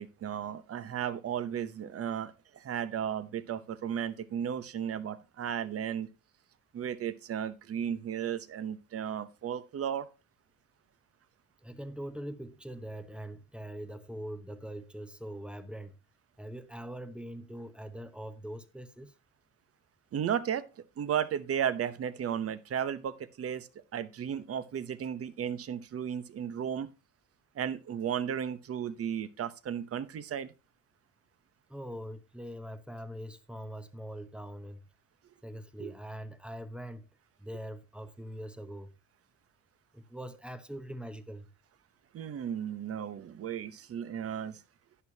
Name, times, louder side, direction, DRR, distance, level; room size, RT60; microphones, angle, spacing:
voice 1, 0.0-6.1 6.7-10.1 20.1-26.9 27.5-30.5 35.8-35.9 42.1-44.6, right 9 dB, 40° right, 0.9 m, -34 dB
voice 2, 11.6-16.0 16.4-19.1 31.7-34.8 35.4-37.1 37.4-38.9 39.9-41.5, equal, 5° right, 0.8 m, -42 dB
11.0 x 10.5 x 2.8 m
cardioid pair, 130°, 35 cm